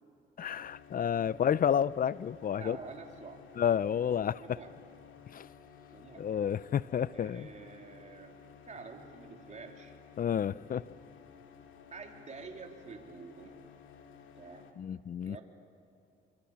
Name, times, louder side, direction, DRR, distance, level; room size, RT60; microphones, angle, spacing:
voice 1, 0.4-2.8 3.6-4.6 5.3-5.5 6.2-7.5 10.2-10.8 14.8-15.4, left 8 dB, 45° left, 19 dB, 0.6 m, -30 dB
sound 1, 0.6-14.7, left 7 dB, 80° left, 2.4 m, -55 dB
voice 2, 2.6-3.4 4.4-4.8 5.9-6.3 7.1-8.4 8.6-9.9 11.9-13.6 14.4-14.7 15.2-15.4, right 4 dB, 35° right, 2 dB, 3.6 m, -48 dB
27.5 x 24.5 x 7.3 m, 2.7 s
cardioid pair, 90°, 20 cm